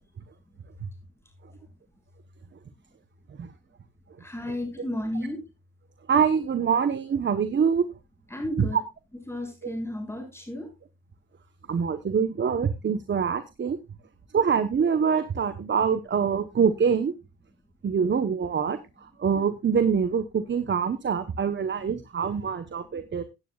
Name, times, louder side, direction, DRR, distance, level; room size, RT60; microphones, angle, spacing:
voice 1, 4.2-5.4 8.3-8.8 9.3-10.7, left 1 dB, 10° left, 2 dB, 6.9 m, -33 dB
voice 2, 6.1-7.9 8.6-8.7 11.7-13.8 14.3-17.1 17.8-23.2, right 6 dB, 40° right, 11 dB, 1.1 m, -25 dB
16.5 x 9.3 x 2.4 m, 0.25 s
cardioid pair, 90°, 30 cm